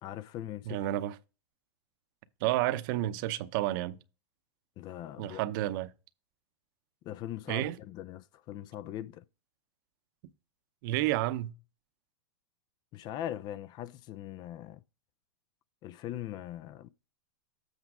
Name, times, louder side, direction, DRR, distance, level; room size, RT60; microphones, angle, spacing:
voice 1, 0.0-0.8 4.8-5.4 7.0-9.2 12.9-14.8 15.8-16.9, left 12 dB, 30° left, 0.4 m, -41 dB
voice 2, 0.7-1.1 2.4-3.9 5.2-5.9 7.5-7.8 10.8-11.5, right 15 dB, 50° right, 0.7 m, -30 dB
8.1 x 4.5 x 4.8 m
hypercardioid pair, 120°, 14 cm